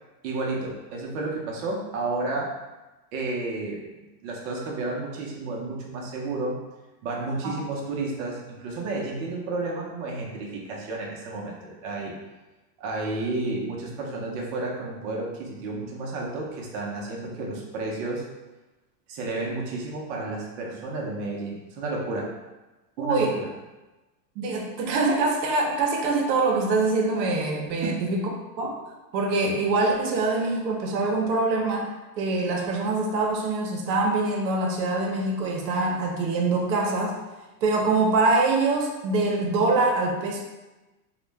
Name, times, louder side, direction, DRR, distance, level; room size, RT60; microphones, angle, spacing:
voice 1, 0.2-2.6 3.1-6.6 7.0-12.2 12.8-18.3 19.1-22.3 23.0-23.5 27.8-28.0, right 2 dB, 45° right, -2 dB, 0.6 m, -31 dB
voice 2, 23.0-23.4 24.4-28.3 28.6-28.8 29.1-31.9 32.2-37.2 37.6-40.4, right 3 dB, 85° right, 0 dB, 0.7 m, -24 dB
2.4 x 2.1 x 3.2 m, 1.1 s
supercardioid pair, 140°, 50 cm